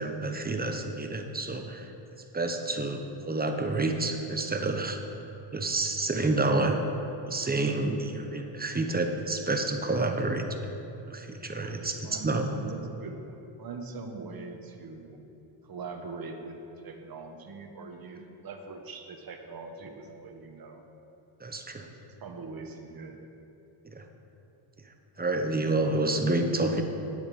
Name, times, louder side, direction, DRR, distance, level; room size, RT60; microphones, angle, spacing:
voice 1, 0.0-1.9 2.3-5.0 5.5-6.8 7.3-10.7 11.1-12.5 21.4-21.8 23.9-24.0 25.2-26.8, right 2 dB, 20° right, 4 dB, 1.0 m, -29 dB
voice 2, 11.6-15.2 15.6-20.8 21.8-23.2, right 3 dB, 45° right, 4 dB, 1.3 m, -42 dB
10.5 x 8.0 x 5.3 m, 3.0 s
cardioid pair, 100°, 48 cm